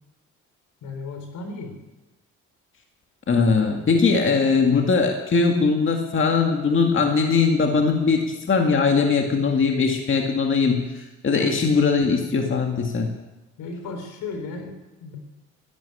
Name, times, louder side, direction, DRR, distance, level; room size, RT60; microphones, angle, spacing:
voice 1, 0.8-1.8 11.2-11.6 13.6-15.2, left 3 dB, 85° left, 5 dB, 3.8 m, -35 dB
voice 2, 3.3-13.1, left 4 dB, 40° left, 3 dB, 2.1 m, -20 dB
12.5 x 11.5 x 9.8 m, 1.1 s
cardioid pair, 90°, 30 cm